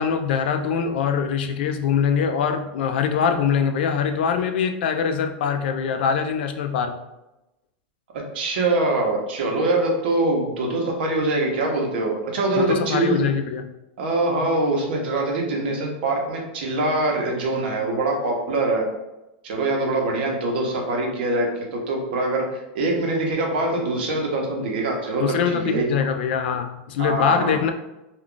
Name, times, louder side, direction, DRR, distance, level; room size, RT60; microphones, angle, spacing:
voice 1, 0.0-6.9 12.5-13.7 25.2-27.7, left 7 dB, 75° left, 7 dB, 0.4 m, -23 dB
voice 2, 8.3-13.2 14.0-18.8 19.4-25.2 25.5-25.9 27.0-27.5, right 2 dB, 70° right, 1 dB, 0.8 m, -23 dB
2.3 x 2.3 x 3.7 m, 0.95 s
supercardioid pair, 150°, 6 cm